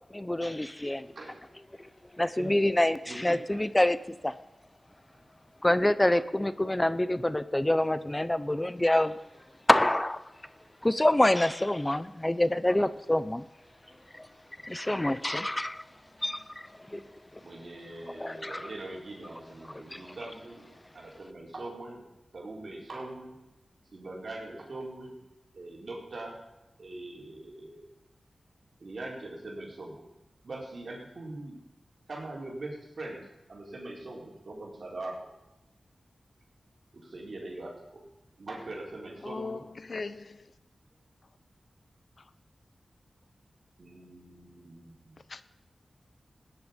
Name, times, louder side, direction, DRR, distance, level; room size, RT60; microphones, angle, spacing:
voice 1, 0.1-1.1 2.2-4.0 4.2-4.3 5.6-9.2 9.7-10.2 10.8-13.4 14.1-14.3 14.6-15.8 16.2-17.0 18.2-18.7 19.7-20.1, left 1 dB, 20° left, 0.7 m, -26 dB
voice 2, 1.1-1.5 2.4-2.6 3.1-3.6 17.4-20.7 20.9-22.0 22.3-23.4 23.9-25.1 25.5-26.4 26.8-27.8 28.8-30.0 30.4-31.6 32.1-35.2 36.9-38.0 38.4-39.6 43.8-45.2, right 2 dB, 65° right, 4.1 m, -42 dB
voice 3, 39.2-40.5 42.2-42.3 45.3-45.4, left 4 dB, 60° left, 0.9 m, -39 dB
16.5 x 10.0 x 5.3 m
cardioid pair, 55°, 0 cm